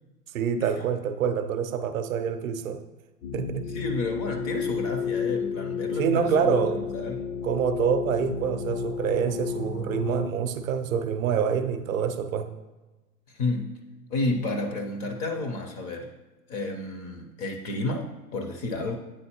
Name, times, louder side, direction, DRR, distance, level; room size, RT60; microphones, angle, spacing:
voice 1, 0.3-2.8 3.3-3.7 6.0-6.8 7.4-12.5, right 7 dB, 55° right, 8 dB, 0.6 m, -26 dB
sound 1, 3.2-10.3, left 6 dB, 70° left, 0.6 m, -31 dB
voice 2, 3.7-7.3 13.4-13.7 14.1-16.1 16.5-18.9, left 2 dB, 25° left, 3 dB, 0.4 m, -31 dB
8.8 x 3.9 x 2.8 m, 1.1 s
figure-of-eight pair, 100°, 48 cm